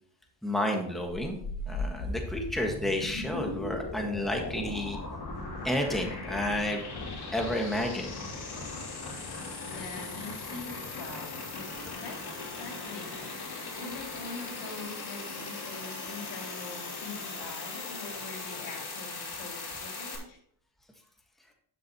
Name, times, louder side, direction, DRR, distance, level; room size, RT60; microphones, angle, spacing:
voice 1, 0.4-1.4 1.7-5.0 5.6-6.8 7.3-8.1, left 1 dB, ahead, 1.6 m, -31 dB
sound 1, 1.0-20.2, left 3 dB, 55° left, 3.3 m, -38 dB
voice 2, 5.3-5.7 9.2-13.4 13.7-20.4, left 3 dB, 75° left, 2.9 m, -44 dB
10.0 x 7.8 x 3.0 m
cardioid pair, 95°, 45 cm